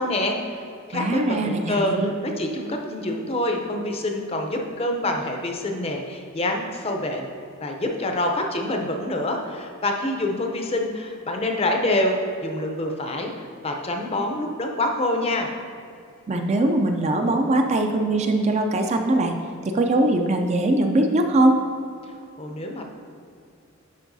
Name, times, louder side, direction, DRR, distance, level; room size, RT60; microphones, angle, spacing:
voice 1, 0.0-7.3 7.6-15.5 22.0-22.8, left 1 dB, 30° left, 3 dB, 0.6 m, -26 dB
voice 2, 0.9-2.1 16.3-19.3 19.7-21.6, right 1 dB, 30° right, 4 dB, 0.4 m, -21 dB
10.5 x 4.6 x 2.7 m, 2.4 s
head